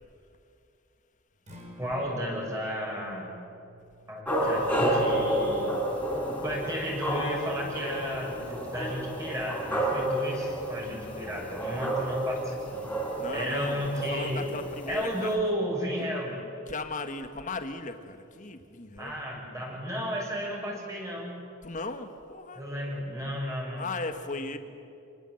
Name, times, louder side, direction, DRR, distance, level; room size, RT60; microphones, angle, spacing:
Acoustic guitar, 1.3-9.5, equal, 35° right, 5.9 m, -55 dB
voice 1, 1.8-3.3 4.1-5.7 6.4-12.8 13.3-14.5 14.9-16.4 19.0-21.4 22.5-23.9, equal, 15° right, -2 dB, 6.7 m, -33 dB
sound 1, 4.2-15.3, right 1 dB, 10° left, 4.5 m, -31 dB
voice 2, 10.8-11.3 13.2-15.4 16.7-19.2 21.6-22.7 23.8-24.6, left 3 dB, 40° left, 7 dB, 1.7 m, -37 dB
28.5 x 20.0 x 8.0 m, 2.6 s
head